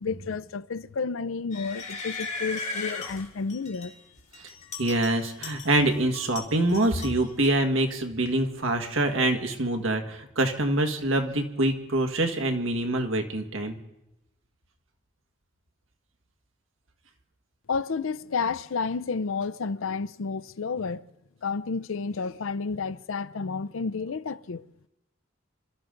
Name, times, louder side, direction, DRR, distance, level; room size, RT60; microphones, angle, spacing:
voice 1, 0.0-4.0 17.7-21.0 21.4-24.7, left 5 dB, 80° left, 0.5 m, -31 dB
sound 1, 1.5-3.9 4.3-5.9 6.1-7.5, left 3 dB, 35° left, 2.3 m, -37 dB
voice 2, 4.8-13.8, right 1 dB, 80° right, 1.8 m, -25 dB
26.5 x 13.0 x 3.9 m
head